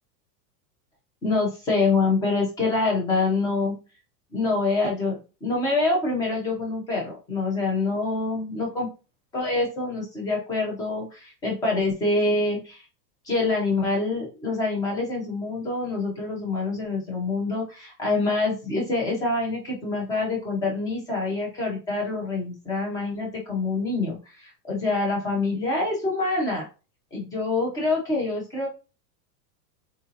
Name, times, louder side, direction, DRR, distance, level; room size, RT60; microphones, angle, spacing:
voice 1, 1.2-3.8 4.3-8.9 9.3-12.8 13.3-26.7 27.1-28.7, left 3 dB, 10° left, -1 dB, 0.4 m, -26 dB
3.8 x 2.7 x 2.4 m, 0.31 s
supercardioid pair, 155°, 49 cm